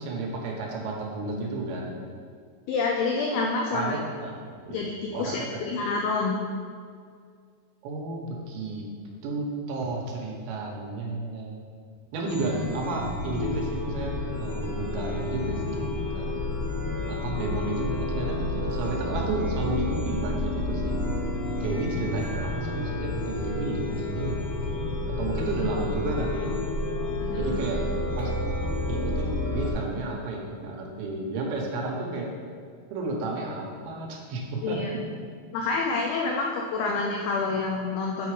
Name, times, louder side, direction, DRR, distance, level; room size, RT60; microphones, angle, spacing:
voice 1, 0.0-1.9 3.7-4.3 4.6-4.8 5.1-5.6 7.8-8.9 9.2-11.7 12.1-16.3 17.1-21.0 21.6-26.5 27.3-27.8 28.2-28.3 28.9-32.3 32.9-34.8, right 2 dB, 80° right, -1 dB, 3.3 m, -32 dB
voice 2, 2.7-4.0 4.7-6.4 27.2-27.6 34.6-34.9 35.5-38.3, left 3 dB, 85° left, 0 dB, 2.2 m, -28 dB
Chime, 12.2-29.7, left 2 dB, 55° left, 2.4 m, -30 dB
9.3 x 4.7 x 4.8 m, 2.1 s
omnidirectional pair, 5.2 m